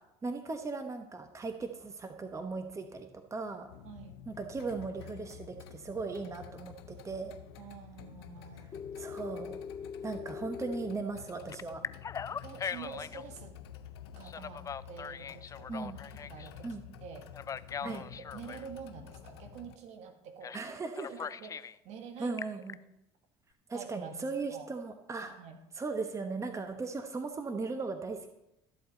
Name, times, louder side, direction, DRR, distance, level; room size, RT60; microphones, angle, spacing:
voice 1, 0.2-3.7 4.3-7.3 9.0-9.6 10.0-11.8 15.7-16.0 16.6-16.8 17.8-18.0 20.5-21.1 22.2-22.8 23.7-25.3 25.8-28.3, right 4 dB, 25° right, 6 dB, 1.1 m, -38 dB
sound 1, 3.7-19.8, left 11 dB, 85° left, 0.7 m, -50 dB
voice 2, 3.8-4.2 7.6-8.7 12.3-13.6 14.1-17.3 17.8-20.7 21.1-22.4 23.7-24.7 25.2-25.6, right 7 dB, 60° right, 5 dB, 1.7 m, -48 dB
Telephone, 8.7-11.0 11.5-13.3 14.2-16.5 17.3-18.7 20.4-20.7 20.9-21.7 22.2-22.7, left 7 dB, 25° left, 0.3 m, -40 dB
13.0 x 7.9 x 4.0 m, 0.88 s
hypercardioid pair, 80°, 13 cm